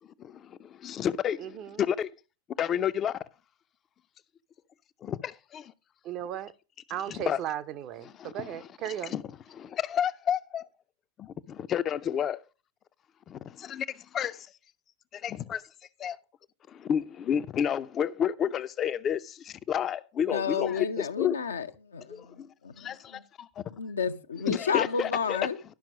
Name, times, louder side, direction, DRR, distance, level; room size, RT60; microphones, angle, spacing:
voice 1, 0.2-2.1 2.6-3.2 5.0-5.7 7.1-7.4 8.0-9.2 9.5-10.7 11.2-12.4 13.3-14.5 15.1-15.7 16.0-16.2 16.7-21.4 22.1-22.5 22.8-22.9 24.5-25.4, left 9 dB, 30° left, 0.5 m, -31 dB
voice 2, 1.4-1.8 6.0-6.5 6.9-9.1, right 10 dB, 35° right, 0.7 m, -36 dB
voice 3, 20.3-22.8 23.8-25.6, left 6 dB, 70° left, 0.7 m, -31 dB
11.5 x 5.9 x 5.0 m
figure-of-eight pair, 90°, 0 cm